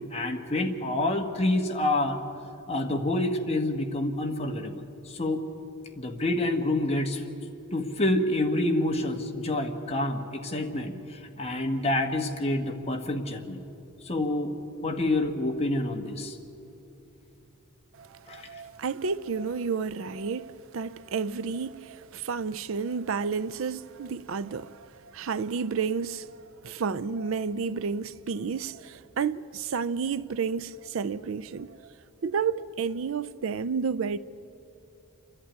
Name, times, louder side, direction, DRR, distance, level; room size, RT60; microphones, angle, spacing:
voice 1, 0.0-2.2 2.7-5.4 6.0-7.2 7.7-13.6 14.0-14.5 14.8-16.4 18.3-18.6, left 1 dB, 30° left, 1.4 m, -28 dB
voice 2, 18.0-31.8 32.2-34.2, right 5 dB, 65° right, 0.4 m, -31 dB
28.0 x 11.0 x 9.6 m
head